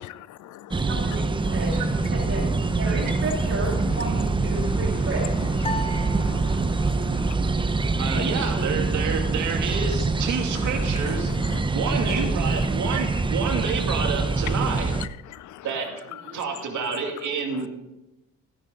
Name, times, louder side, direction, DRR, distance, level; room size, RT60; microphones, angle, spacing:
voice 1, 0.3-0.8 1.4-1.6 4.5-4.8 5.7-7.4 11.1-11.6 12.1-12.2 14.5-15.7 16.9-17.0, left 14 dB, 75° left, 0.6 m, -41 dB
sound 1, 0.7-15.1, right 3 dB, 15° right, 0.7 m, -25 dB
voice 2, 0.8-2.4 2.7-5.3 8.6-8.7 12.0-12.3 16.2-16.4, right 2 dB, 50° right, 2.8 m, -32 dB
sound 2, 5.6-7.1, equal, 20° left, 1.3 m, -35 dB
voice 3, 7.5-14.9 15.6-16.0 16.3-17.7, right 5 dB, 75° right, 2.5 m, -29 dB
15.5 x 10.0 x 3.9 m
cardioid pair, 90°, 30 cm